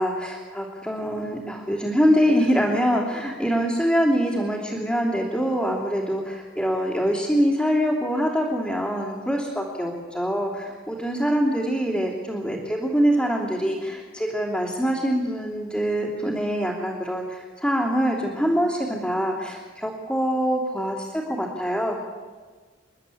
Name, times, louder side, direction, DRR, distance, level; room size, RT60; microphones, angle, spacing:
voice 1, 0.0-21.9, equal, 5° left, -8 dB, 3.1 m, -24 dB
29.0 x 11.5 x 8.5 m, 1.4 s
head